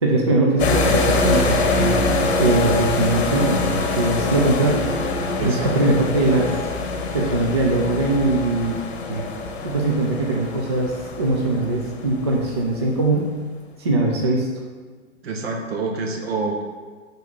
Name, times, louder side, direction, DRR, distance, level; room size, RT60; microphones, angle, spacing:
voice 1, 0.0-2.0 2.4-4.8 5.4-6.5 7.1-8.8 9.1-9.3 9.6-13.3 13.8-14.5, right 2 dB, 25° right, -1 dB, 0.3 m, -21 dB
sound 1, 0.6-12.7, left 3 dB, 55° left, 0.9 m, -24 dB
voice 2, 5.4-6.0 15.2-16.6, right 3 dB, 50° right, 2 dB, 1.2 m, -27 dB
5.5 x 3.7 x 5.3 m, 1.5 s
figure-of-eight pair, 120°, 39 cm